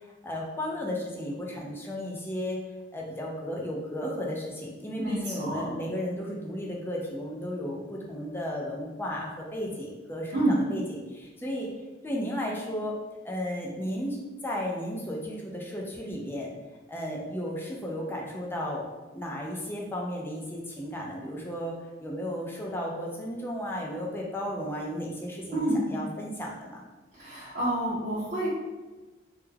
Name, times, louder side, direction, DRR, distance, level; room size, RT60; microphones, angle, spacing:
voice 1, 0.2-2.6 2.9-11.7 12.0-13.0 13.2-16.5 16.9-18.9 19.1-26.8, equal, 10° left, -2 dB, 0.4 m, -34 dB
voice 2, 5.0-5.7 10.3-10.5 25.5-25.8 27.1-28.6, right 1 dB, 45° right, -10 dB, 0.6 m, -28 dB
2.2 x 2.2 x 3.2 m, 1.2 s
head